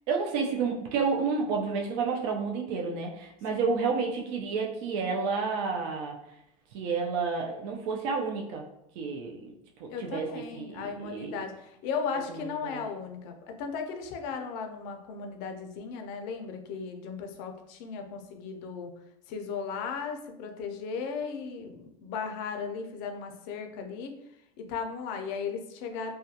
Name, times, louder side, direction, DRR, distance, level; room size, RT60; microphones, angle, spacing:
voice 1, 0.1-6.2 6.7-8.7 9.0-9.5 9.8-11.4 12.3-12.8, right 5 dB, 50° right, 0 dB, 0.4 m, -30 dB
voice 2, 9.9-18.9 19.3-24.1 24.6-26.1, left 5 dB, 55° left, 4 dB, 0.4 m, -36 dB
2.3 x 2.2 x 2.7 m, 0.80 s
supercardioid pair, 145°, 19 cm